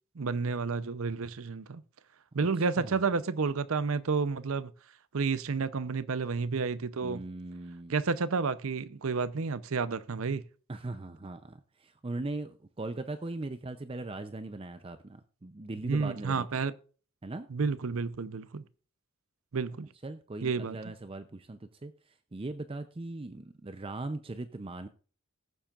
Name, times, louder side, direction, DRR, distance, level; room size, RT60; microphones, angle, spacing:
voice 1, 0.1-1.8 2.3-4.7 5.1-7.2 7.9-10.4 15.9-16.7 17.5-18.6 19.5-19.9 20.4-20.8, right 4 dB, 65° right, 0.6 m, -30 dB
voice 2, 2.4-3.0 7.0-7.9 10.7-16.5 17.2-17.5 20.0-24.9, right 2 dB, 25° right, 0.5 m, -39 dB
19.5 x 7.3 x 2.4 m
head